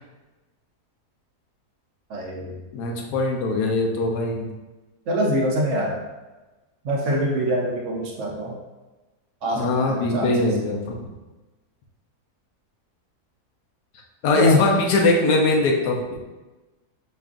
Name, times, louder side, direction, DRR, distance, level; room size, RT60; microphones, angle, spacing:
voice 1, 2.1-2.5 5.1-6.0 6.8-8.5 9.4-10.5 14.3-14.7, equal, 65° right, -2 dB, 0.7 m, -24 dB
voice 2, 2.7-4.5 9.6-11.1 14.2-16.2, left 2 dB, 85° left, 0 dB, 1.2 m, -21 dB
5.1 x 2.4 x 2.4 m, 1.1 s
omnidirectional pair, 1.7 m